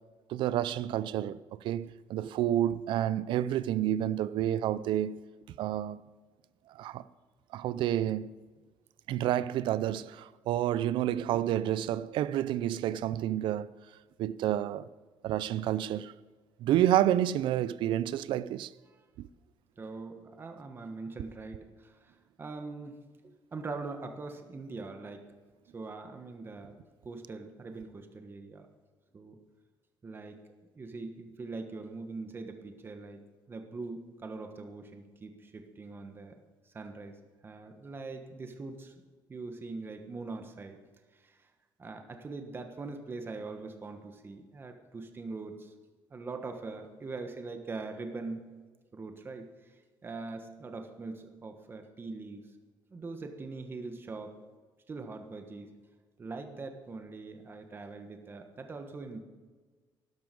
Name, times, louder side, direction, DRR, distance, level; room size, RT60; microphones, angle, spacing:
voice 1, 0.3-5.2 5.6-6.0 6.8-7.0 7.5-8.3 9.1-13.7 14.2-14.9 15.2-16.1 16.6-18.7 19.2-19.3, right 12 dB, 75° right, 0.5 m, -29 dB
voice 2, 19.8-23.0 23.5-25.2 25.7-26.8 27.0-28.7 29.1-29.4 30.0-30.4 30.7-33.2 33.5-36.3 36.7-37.1 37.4-38.9 39.3-40.8 41.1-41.4 41.8-45.7 46.1-48.4 48.9-49.7 50.0-52.5 52.9-54.4 54.9-55.7 56.2-59.2, right 3 dB, 25° right, 1.3 m, -42 dB
12.5 x 12.0 x 5.3 m
cardioid pair, 130°, 8 cm